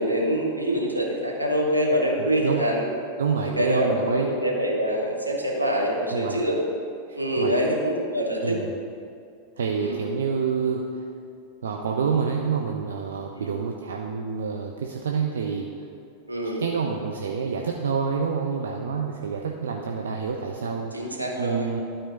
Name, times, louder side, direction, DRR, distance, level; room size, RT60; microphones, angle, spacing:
voice 1, 0.0-2.8 3.6-6.6 7.1-8.6 9.8-10.0 13.3-13.5 16.3-16.6 20.9-21.7, equal, 85° right, -2 dB, 1.3 m, -25 dB
voice 2, 2.2-2.6 3.2-4.3 6.1-6.4 7.1-7.5 8.4-8.7 9.6-10.8 11.6-15.7 16.6-21.8, right 6 dB, 65° right, 1 dB, 0.6 m, -28 dB
12.0 x 4.4 x 5.2 m, 2.4 s
figure-of-eight pair, 90°, 0 cm